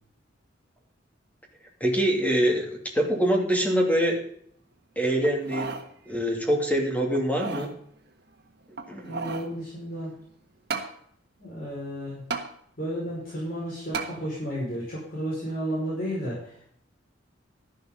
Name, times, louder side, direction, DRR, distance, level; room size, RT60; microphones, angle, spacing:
voice 1, 1.8-4.2 5.0-5.7 6.1-7.7 8.9-9.1, equal, 10° left, 1 dB, 2.7 m, -24 dB
sound 1, 5.2-5.9 6.3-6.4 7.1-7.7 8.7-9.5 10.7-10.9 12.3-12.5 13.9-14.1 14.7-14.8, right 4 dB, 60° right, 1.5 m, -33 dB
voice 2, 9.0-10.1 11.4-12.2 12.8-16.7, equal, 50° left, -6 dB, 5.5 m, -32 dB
12.5 x 11.5 x 3.9 m, 0.65 s
head